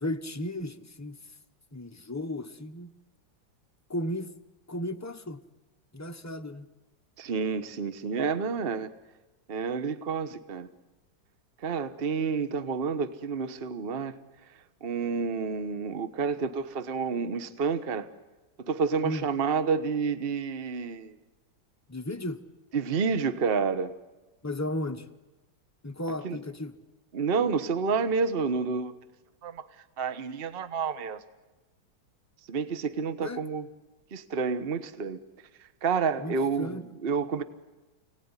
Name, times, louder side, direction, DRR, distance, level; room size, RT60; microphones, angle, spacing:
voice 1, 0.0-1.2 1.7-2.9 3.9-4.3 4.7-5.4 5.9-6.7 19.0-19.2 21.9-22.4 24.4-25.1 25.8-26.8 33.2-33.4 36.2-36.8, left 1 dB, 15° left, 0.6 m, -34 dB
voice 2, 7.2-8.9 9.5-10.7 11.6-14.1 14.8-18.1 18.6-21.1 22.7-23.9 26.2-26.4 27.1-28.9 29.4-29.6 30.0-31.2 32.5-33.7 34.1-35.2 35.8-37.4, right 5 dB, 35° right, 1.1 m, -29 dB
29.0 x 18.5 x 9.8 m
omnidirectional pair, 2.1 m